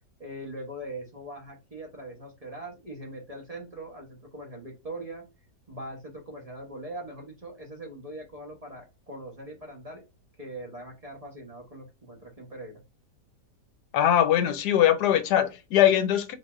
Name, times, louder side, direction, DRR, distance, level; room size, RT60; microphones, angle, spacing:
voice 1, 0.2-5.2 5.7-10.0 10.4-12.8, right 1 dB, 30° right, 0.8 m, -41 dB
voice 2, 13.9-16.4, left 11 dB, 80° left, 1.2 m, -21 dB
3.9 x 3.4 x 2.4 m
omnidirectional pair, 1.8 m